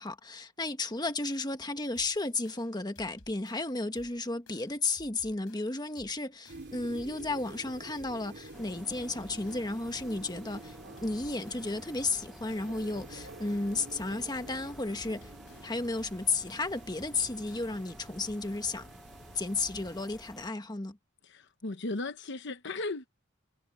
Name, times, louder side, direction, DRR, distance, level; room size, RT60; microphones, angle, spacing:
voice 1, 0.0-10.8 11.0-15.3 15.6-18.8 19.3-21.0, left 3 dB, 20° left, 1.3 m, -33 dB
sound 1, 2.0-17.9, left 2 dB, 90° left, 4.8 m, -59 dB
sound 2, 6.5-20.0, right 2 dB, 50° right, 2.6 m, -49 dB
sound 3, 8.5-20.5, equal, ahead, 1.0 m, -52 dB
voice 2, 21.2-23.1, left 2 dB, 55° left, 1.0 m, -36 dB
head